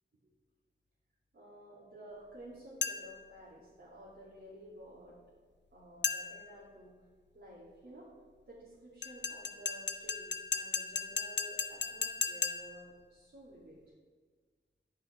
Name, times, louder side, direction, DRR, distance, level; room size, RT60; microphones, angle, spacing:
voice 1, 1.3-5.2 5.7-6.9 7.3-8.1 8.5-13.8, right 1 dB, 70° right, -8 dB, 2.5 m, -52 dB
sound 1, 2.8-3.3 6.0-6.5 9.0-12.9, left 5 dB, 60° left, 0.6 m, -36 dB
9.9 x 5.6 x 5.7 m, 1.5 s
cardioid pair, 50°, 20 cm